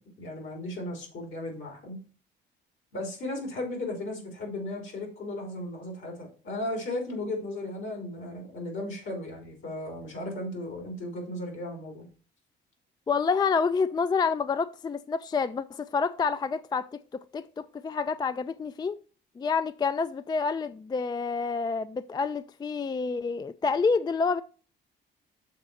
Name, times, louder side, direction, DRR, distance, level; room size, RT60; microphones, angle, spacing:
voice 1, 0.2-2.0 2.9-12.0, left 1 dB, 75° left, 3.4 m, -35 dB
voice 2, 13.1-19.0 19.4-24.4, left 5 dB, 20° left, 0.3 m, -28 dB
6.6 x 4.1 x 6.2 m
cardioid pair, 90°, 20 cm